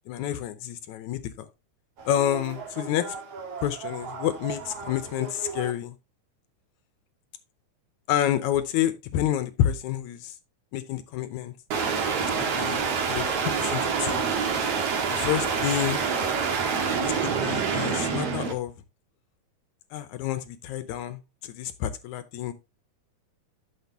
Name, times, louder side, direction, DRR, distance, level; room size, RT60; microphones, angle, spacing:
voice 1, 0.1-1.5 2.1-3.2 3.6-6.0 8.1-10.4 10.7-11.5 12.4-12.8 13.1-14.2 15.1-16.0 17.0-18.7 19.9-22.5, left 11 dB, 75° left, 2.0 m, -29 dB
sound 1, 2.0-5.7 11.7-18.5, right 5 dB, 55° right, 2.5 m, -28 dB
11.5 x 6.6 x 2.8 m
omnidirectional pair, 3.7 m